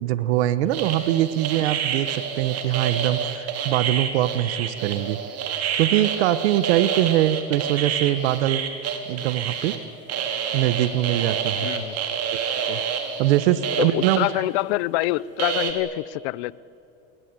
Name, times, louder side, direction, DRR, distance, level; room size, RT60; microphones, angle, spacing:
voice 1, 0.0-5.2 5.8-8.6 9.1-9.8 10.5-11.7 12.7-12.8 13.2-14.3, right 13 dB, 85° right, 14 dB, 1.2 m, -22 dB
sound 1, 0.7-9.8 10.1-14.3 15.0-15.1 15.4-15.7, right 7 dB, 50° right, 4.2 m, -28 dB
voice 2, 11.6-12.0 13.8-16.5, left 18 dB, 80° left, 21 dB, 0.8 m, -26 dB
28.5 x 20.5 x 9.6 m, 2.8 s
supercardioid pair, 110°, 32 cm